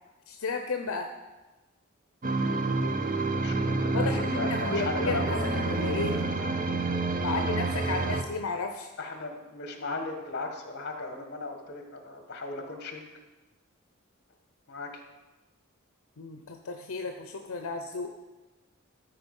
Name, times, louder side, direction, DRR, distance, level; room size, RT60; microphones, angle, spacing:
voice 1, 0.3-1.1 3.9-6.1 7.2-8.9 16.2-18.1, left 4 dB, 75° left, 5 dB, 0.6 m, -33 dB
sound 1, 2.2-8.2, right 3 dB, 40° right, 0.6 m, -28 dB
voice 2, 3.4-5.5 7.2-7.7 9.0-13.0 14.7-15.0, left 2 dB, 50° left, 4 dB, 1.4 m, -36 dB
13.0 x 4.5 x 5.3 m, 1.1 s
head